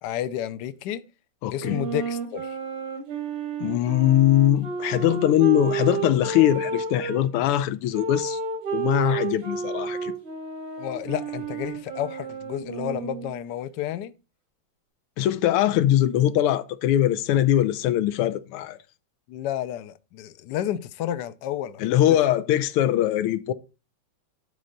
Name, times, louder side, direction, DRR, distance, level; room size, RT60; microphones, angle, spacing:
voice 1, 0.0-1.0 1.5-2.6 10.8-14.1 19.3-22.0, left 11 dB, 70° left, 1.0 m, -31 dB
voice 2, 1.4-1.8 3.6-8.4 8.7-10.1 15.2-18.8 21.8-23.5, left 12 dB, 90° left, 1.5 m, -21 dB
sound 1, 1.6-7.2 7.9-13.4, right 5 dB, 85° right, 3.3 m, -31 dB
11.5 x 4.5 x 3.9 m
omnidirectional pair, 2.4 m